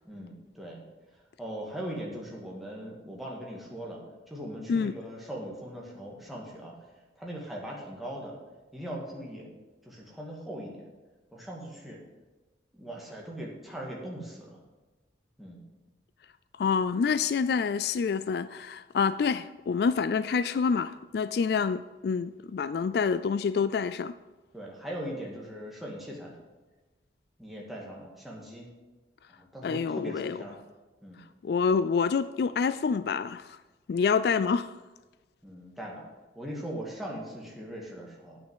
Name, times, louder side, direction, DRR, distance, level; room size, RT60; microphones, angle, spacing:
voice 1, 0.0-0.8 1.4-6.8 7.2-8.4 8.7-9.5 9.8-10.9 11.3-12.0 12.7-14.6 15.4-15.6 24.5-26.4 27.4-28.7 29.3-30.6 31.0-31.2 35.4-36.1 36.3-38.4, equal, ahead, 2.1 m, -40 dB
voice 2, 16.6-24.1 29.6-30.4 31.4-33.6 33.9-34.7, left 5 dB, 60° left, 0.3 m, -27 dB
8.9 x 6.2 x 8.0 m
head